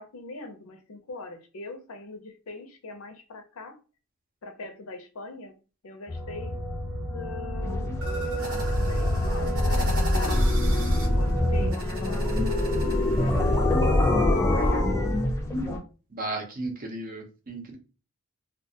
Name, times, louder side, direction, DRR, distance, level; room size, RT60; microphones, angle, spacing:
voice 1, 0.0-3.8 4.4-5.6 5.8-6.6 7.1-14.5, left 3 dB, 70° left, 0.5 m, -42 dB
sound 1, 6.1-11.7, left 1 dB, ahead, 0.9 m, -27 dB
sound 2, 7.6-15.8, left 1 dB, 15° left, 0.4 m, -25 dB
sound 3, 8.0-13.6, equal, 75° right, 0.8 m, -38 dB
voice 2, 16.1-17.8, right 2 dB, 40° right, 0.6 m, -34 dB
2.3 x 2.2 x 2.7 m
head